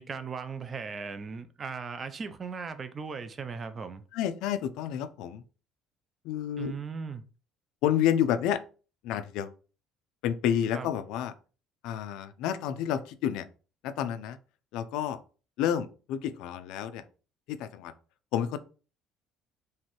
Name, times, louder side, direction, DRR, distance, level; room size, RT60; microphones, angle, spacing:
voice 1, 0.0-4.0 6.6-7.2 10.7-10.9, right 5 dB, 20° right, 0.4 m, -37 dB
voice 2, 4.1-5.4 6.2-6.7 7.8-8.6 9.0-9.5 10.2-11.3 11.8-13.5 13.8-14.4 14.7-15.2 15.6-17.0 17.5-17.9 18.3-18.6, left 10 dB, 65° left, 0.4 m, -29 dB
4.5 x 3.2 x 3.0 m
cardioid pair, 175°, 0 cm